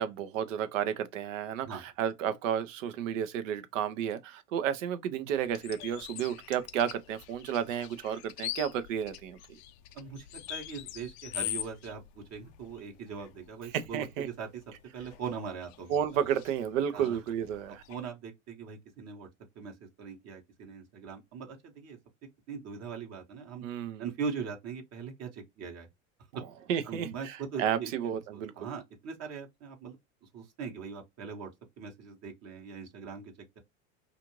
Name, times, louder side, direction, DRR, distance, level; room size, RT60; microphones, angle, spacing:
voice 1, 0.0-9.4 13.7-14.3 15.9-17.8 23.6-24.1 26.7-28.7, right 9 dB, 70° right, 0.7 m, -32 dB
sound 1, 5.3-18.1, left 14 dB, 55° left, 0.5 m, -44 dB
voice 2, 9.9-14.5 14.9-16.0 16.9-17.2 17.9-19.3 19.5-22.0 22.5-23.6 24.0-25.9 26.3-26.4 26.9-27.9 28.3-30.0 30.3-31.5 31.8-33.6, right 6 dB, 40° right, 1.0 m, -41 dB
2.5 x 2.5 x 3.0 m
hypercardioid pair, 95°, 39 cm